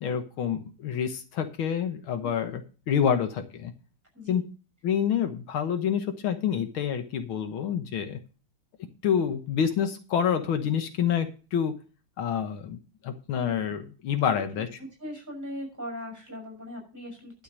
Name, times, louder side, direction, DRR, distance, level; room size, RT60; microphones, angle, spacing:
voice 1, 0.0-3.7 4.3-4.4 4.8-8.2 9.0-11.7 12.2-12.8 13.0-14.7, left 8 dB, 80° left, 8 dB, 2.0 m, -27 dB
voice 2, 2.2-2.5 4.1-4.4 14.8-17.3, left 1 dB, 10° right, 1 dB, 6.0 m, -39 dB
11.5 x 6.7 x 6.2 m, 0.36 s
omnidirectional pair, 2.2 m